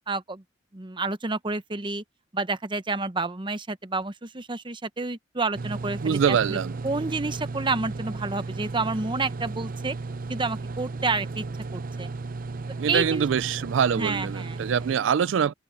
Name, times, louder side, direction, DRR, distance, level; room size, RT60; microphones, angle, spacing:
voice 1, 0.1-0.4 0.7-2.0 2.3-6.6 6.8-10.0 10.3-11.5 11.7-12.1 12.9-13.3 13.9-14.7, right 3 dB, 25° right, 0.9 m, -29 dB
sound 1, 5.5-15.0, right 3 dB, 50° right, 0.6 m, -34 dB
voice 2, 6.0-6.8 12.8-15.5, right 7 dB, 85° right, 0.4 m, -24 dB
head